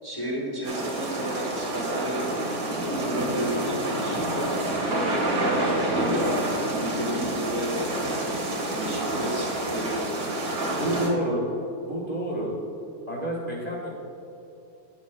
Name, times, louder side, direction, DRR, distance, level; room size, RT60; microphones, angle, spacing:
voice 1, 0.0-2.3 2.8-10.5, equal, 15° left, -3 dB, 1.1 m, -32 dB
sound 1, 0.6-11.1, right 1 dB, 80° right, 2.1 m, -28 dB
voice 2, 10.7-11.5 11.9-12.6 13.1-13.9, right 1 dB, 25° right, -4 dB, 1.3 m, -29 dB
10.5 x 10.0 x 2.2 m, 2.7 s
omnidirectional pair, 1.8 m